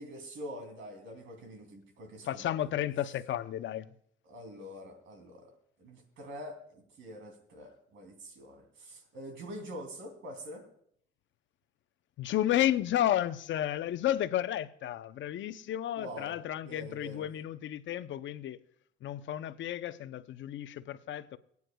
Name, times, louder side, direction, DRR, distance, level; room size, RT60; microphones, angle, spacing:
voice 1, 0.0-2.5 4.3-5.5 5.8-10.6 15.9-16.4 16.6-17.3, equal, 80° right, 3.0 m, -45 dB
voice 2, 2.2-3.9 12.2-18.6 19.0-21.4, left 12 dB, 70° left, 0.7 m, -32 dB
23.5 x 9.5 x 2.3 m
cardioid pair, 90°, 20 cm